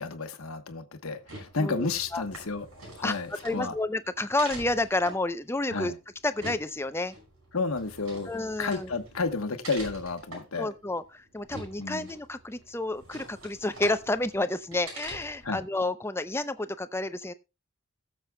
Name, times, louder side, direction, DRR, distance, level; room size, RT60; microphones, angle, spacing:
voice 1, 0.0-2.7 3.0-3.7 5.7-6.0 7.5-8.3 8.6-10.7 11.8-12.1 15.4-15.6, left 4 dB, 75° left, 1.1 m, -31 dB
sound 1, 1.1-15.6, right 2 dB, 70° right, 5.7 m, -45 dB
voice 2, 3.4-5.9 6.2-7.2 8.3-8.9 10.6-17.3, left 2 dB, 10° left, 0.5 m, -30 dB
22.0 x 7.4 x 2.2 m
head